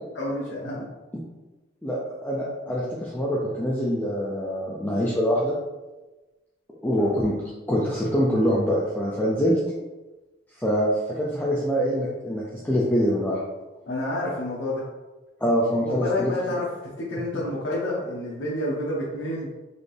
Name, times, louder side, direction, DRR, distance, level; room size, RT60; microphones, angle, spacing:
voice 1, 0.1-0.9 7.0-7.2 13.9-14.8 15.9-19.5, left 1 dB, 80° left, -7 dB, 0.8 m, -29 dB
voice 2, 1.8-5.6 6.8-7.4 7.7-9.6 10.6-13.4 15.4-16.3, equal, 10° left, -5 dB, 0.5 m, -24 dB
4.1 x 2.7 x 3.3 m, 1.1 s
head